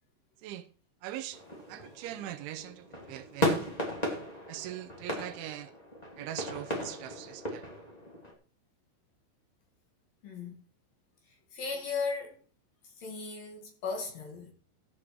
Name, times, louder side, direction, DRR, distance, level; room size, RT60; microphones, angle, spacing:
voice 1, 1.0-1.4 1.7-3.7 4.5-5.7 6.2-7.7, right 13 dB, 80° right, 3.0 m, -41 dB
sound 1, 1.3-8.3, left 1 dB, 15° left, 1.7 m, -36 dB
voice 2, 10.2-10.5 11.5-12.4 13.0-14.5, left 4 dB, 55° left, 3.2 m, -36 dB
15.0 x 7.6 x 4.7 m
omnidirectional pair, 5.6 m